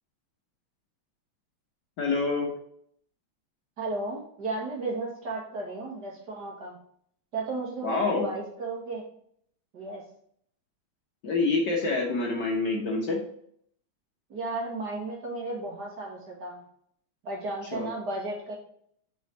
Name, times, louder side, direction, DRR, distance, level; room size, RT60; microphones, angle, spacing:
voice 1, 2.0-2.5 7.8-8.3 11.2-13.2 17.7-17.9, left 3 dB, 55° left, 0 dB, 1.6 m, -27 dB
voice 2, 3.8-6.8 7.3-9.0 9.7-10.0 14.3-16.6 17.2-18.5, right 2 dB, 50° right, -2 dB, 2.5 m, -34 dB
5.7 x 5.6 x 4.0 m, 0.66 s
omnidirectional pair, 2.4 m